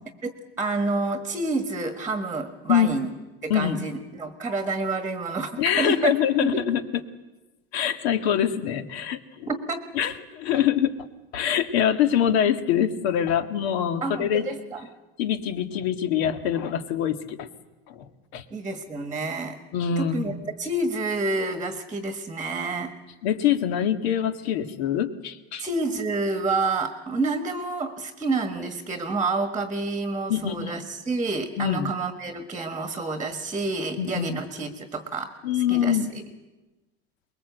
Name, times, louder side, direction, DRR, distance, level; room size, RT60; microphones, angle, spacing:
voice 1, 0.6-3.1 3.4-6.1 6.4-6.7 9.5-9.8 14.0-14.9 18.5-19.6 20.0-22.9 25.6-35.3 35.7-36.2, right 3 dB, 10° right, 8 dB, 1.4 m, -28 dB
voice 2, 2.7-3.0 3.5-3.8 5.6-6.8 7.7-9.5 9.9-10.9 11.3-14.5 15.2-17.5 17.9-18.1 18.3-18.4 19.7-20.4 23.2-25.7 30.3-30.7 31.6-31.9 34.0-34.4 35.4-36.1, left 9 dB, 75° left, 9 dB, 2.0 m, -24 dB
24.0 x 21.5 x 8.1 m, 1.1 s
supercardioid pair, 155°, 32 cm